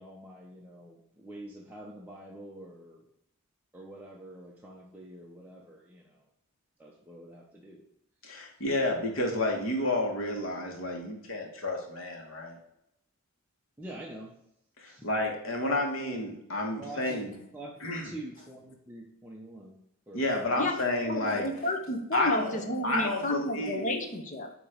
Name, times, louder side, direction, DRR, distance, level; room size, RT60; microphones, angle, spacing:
voice 1, 0.0-3.0 3.7-6.2 6.8-7.8 13.8-14.3 14.8-15.1 16.8-17.3 17.5-17.7 18.0-19.8 20.1-20.2, right 1 dB, 10° right, -3 dB, 0.7 m, -46 dB
voice 2, 8.2-12.6 14.8-17.3 17.8-18.1 20.1-21.5 22.1-23.8, left 1 dB, 70° left, 2 dB, 1.6 m, -30 dB
voice 3, 21.0-24.5, left 1 dB, 35° left, 5 dB, 0.9 m, -31 dB
8.9 x 3.0 x 5.1 m, 0.79 s
head